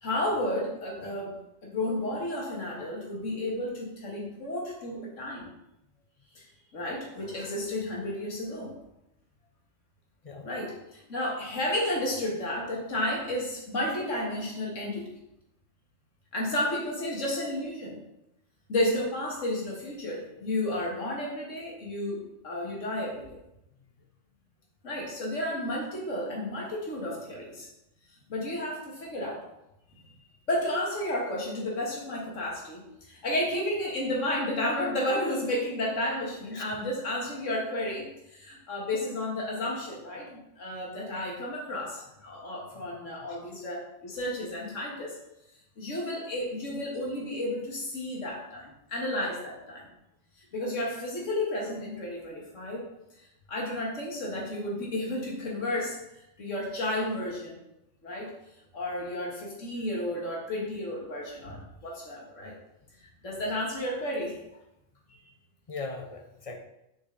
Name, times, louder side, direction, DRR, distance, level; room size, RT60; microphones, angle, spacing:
voice 1, 0.0-5.5 6.4-6.5 6.7-8.7 10.4-10.7 11.1-15.2 16.3-18.0 18.7-23.3 24.8-27.7 28.3-29.4 30.0-30.1 30.5-45.2 45.8-49.9 50.5-52.8 53.5-56.0 56.4-57.6 58.0-58.3 58.7-62.6 63.2-64.4, left 1 dB, 80° left, -2 dB, 2.1 m, -32 dB
voice 2, 10.2-10.6 23.8-23.9 36.5-36.7 40.8-40.9 42.7-42.9 43.2-43.4 65.7-66.6, left 3 dB, 35° left, 3 dB, 0.7 m, -40 dB
6.6 x 5.2 x 3.9 m, 0.87 s
omnidirectional pair, 1.3 m